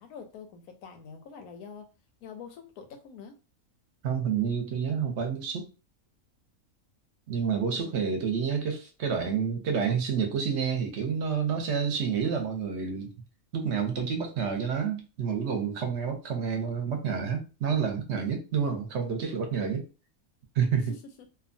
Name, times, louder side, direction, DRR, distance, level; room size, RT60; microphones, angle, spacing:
voice 1, 0.0-1.9 2.2-3.3 7.6-8.0, left 6 dB, 85° left, 1.1 m, -45 dB
voice 2, 4.0-5.6 7.3-13.1 13.5-19.9 20.5-20.9, right 6 dB, 60° right, 0.8 m, -29 dB
2.8 x 2.2 x 2.6 m
omnidirectional pair, 1.5 m